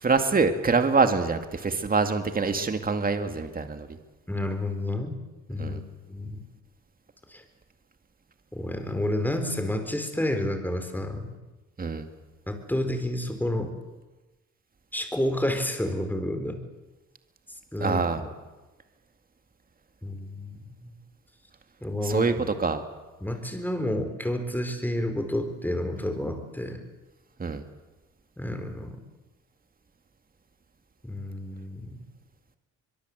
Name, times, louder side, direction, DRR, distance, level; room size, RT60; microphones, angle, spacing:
voice 1, 0.0-4.0 5.6-5.8 11.8-12.1 17.8-18.2 22.0-22.8 27.4-27.6, right 4 dB, 30° right, 7 dB, 2.2 m, -25 dB
voice 2, 4.3-5.2 5.5-5.8 6.1-6.4 7.3-7.4 8.5-11.3 12.5-13.7 14.9-16.6 17.7-18.3 20.0-20.9 21.8-22.4 23.2-26.8 28.4-29.0 31.0-32.0, left 1 dB, 5° left, 6 dB, 4.6 m, -30 dB
24.0 x 22.5 x 8.1 m, 1.2 s
cardioid pair, 90°, 30 cm